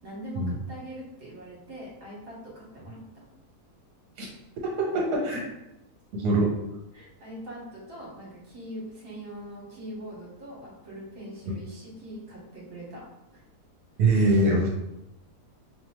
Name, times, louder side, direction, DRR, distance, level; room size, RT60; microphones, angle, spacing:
voice 1, 0.0-3.2 6.9-13.0 13.3-13.4, right 1 dB, 55° right, -5 dB, 1.5 m, -42 dB
voice 2, 4.6-5.4 6.2-6.5 14.0-14.7, right 2 dB, 75° right, -2 dB, 1.2 m, -23 dB
4.2 x 2.8 x 3.0 m, 0.92 s
omnidirectional pair, 1.7 m